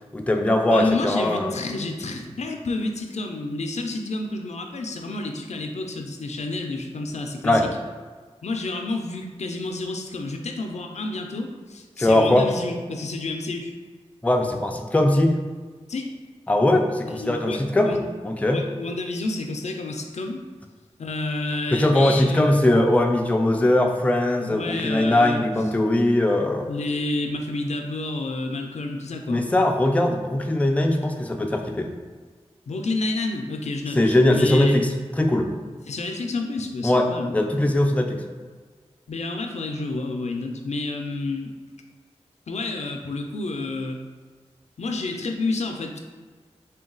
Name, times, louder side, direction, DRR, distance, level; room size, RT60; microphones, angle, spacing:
voice 1, 0.1-1.5 7.4-7.7 12.0-12.5 14.2-15.4 16.5-18.0 18.2-18.6 21.7-26.7 29.3-31.9 34.0-35.5 36.8-38.2, left 1 dB, 10° left, 3 dB, 0.4 m, -20 dB
voice 2, 0.7-7.7 8.4-13.7 15.9-16.1 17.1-18.0 18.5-20.4 21.0-22.6 24.5-25.4 26.7-29.4 32.7-34.0 34.3-34.8 35.9-37.3 39.1-41.5 42.5-44.0 44.8-46.0, left 2 dB, 80° left, 3 dB, 0.4 m, -29 dB
3.8 x 2.2 x 3.8 m, 1.5 s
wide cardioid pair, 65°, 11 cm